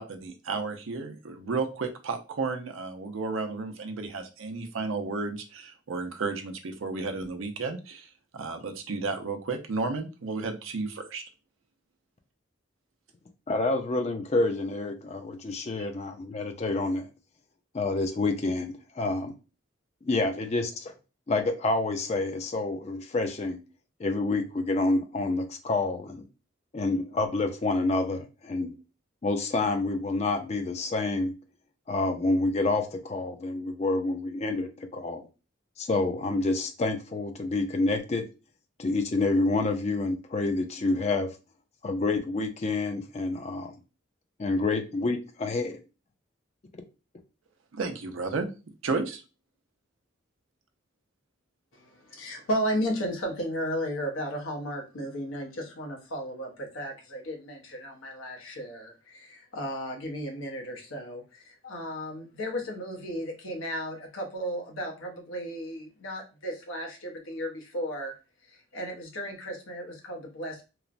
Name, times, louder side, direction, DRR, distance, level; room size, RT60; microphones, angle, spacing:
voice 1, 0.0-11.2 47.7-48.5 48.8-49.2, right 3 dB, 85° right, 0.5 m, -33 dB
voice 2, 13.5-17.1 17.7-19.3 20.0-20.9 21.3-23.6 24.0-26.3 26.7-28.8 29.2-31.3 31.9-35.2 35.8-38.2 38.8-41.3 41.8-43.7 44.4-45.8, left 2 dB, 35° left, 0.3 m, -28 dB
voice 3, 51.7-68.1 68.5-70.6, equal, 90° left, 0.8 m, -34 dB
3.1 x 2.0 x 2.4 m
head